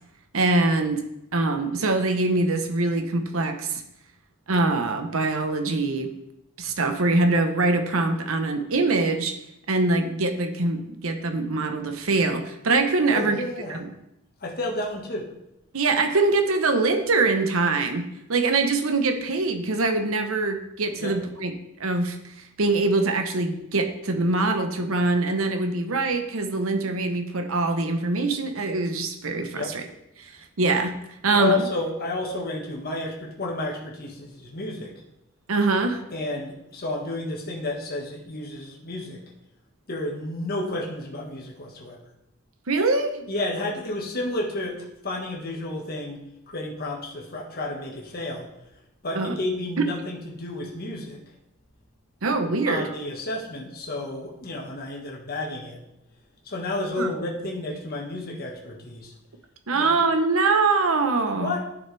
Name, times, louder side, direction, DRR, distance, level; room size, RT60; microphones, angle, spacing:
voice 1, 0.3-1.1 1.3-3.8 4.5-6.1 6.6-9.3 9.7-13.4 13.7-13.9 15.7-21.5 21.8-29.8 30.2-30.3 30.6-30.9 31.2-31.7 35.5-36.0 42.7-43.3 49.1-49.3 49.8-49.9 52.2-52.9 57.0-57.1 59.7-61.6, right 3 dB, 70° right, 6 dB, 0.9 m, -23 dB
voice 2, 13.1-13.8 14.4-15.3 21.0-21.2 29.5-29.7 31.3-35.0 36.1-39.2 39.9-42.1 43.3-48.5 49.0-51.3 52.7-55.8 56.4-59.1 59.7-59.9 61.4-61.6, left 2 dB, 45° left, -1 dB, 1.5 m, -31 dB
11.0 x 6.0 x 3.4 m, 0.84 s
head